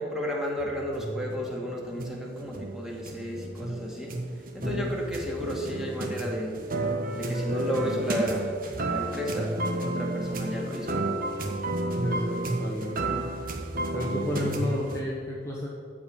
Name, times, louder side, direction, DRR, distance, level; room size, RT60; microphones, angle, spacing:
voice 1, 0.0-4.1 4.5-6.5 7.1-8.5 8.9-9.5 9.8-11.0, equal, 5° right, -3 dB, 2.2 m, -32 dB
sound 1, 0.6-15.0, right 2 dB, 50° right, 1.3 m, -32 dB
voice 2, 4.6-4.9 12.0-13.2 13.9-15.7, left 1 dB, 15° left, -4 dB, 1.2 m, -32 dB
14.0 x 5.0 x 8.9 m, 2.3 s
head